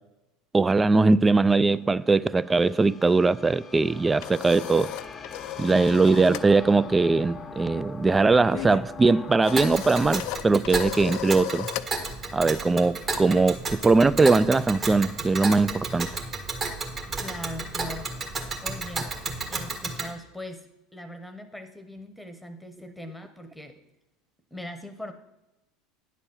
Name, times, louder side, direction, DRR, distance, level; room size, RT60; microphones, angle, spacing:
voice 1, 0.5-5.0 5.6-11.7 12.3-16.1, right 3 dB, 20° right, 0.3 m, -21 dB
sound 1, 1.6-11.8, left 3 dB, 30° left, 0.7 m, -43 dB
sound 2, 3.8-6.5 6.8-7.1 7.4-14.0, left 15 dB, 65° left, 0.4 m, -37 dB
Tick, 9.6-20.1, right 3 dB, 35° right, 1.5 m, -33 dB
voice 2, 17.2-18.1 18.6-19.1 19.5-23.8 24.5-25.1, left 1 dB, 5° left, 1.0 m, -40 dB
9.8 x 4.2 x 7.2 m
hypercardioid pair, 85°, 0 cm